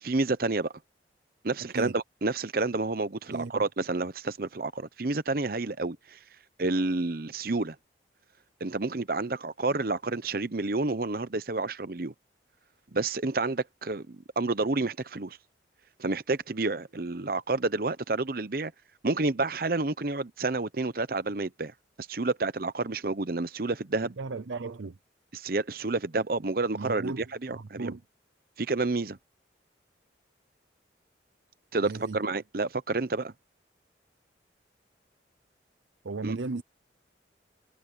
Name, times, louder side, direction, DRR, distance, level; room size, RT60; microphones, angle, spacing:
voice 1, 0.0-0.7 1.4-6.2 6.6-7.8 8.6-12.1 12.9-15.4 16.0-18.7 19.0-21.7 22.1-24.2 25.3-27.9 28.6-29.2 31.7-33.3 36.2-36.4, right 3 dB, 50° right, 0.8 m, -29 dB
voice 2, 3.3-3.6 24.0-25.0 26.7-28.0 31.8-32.2 36.0-36.6, right 3 dB, 85° right, 0.7 m, -36 dB
head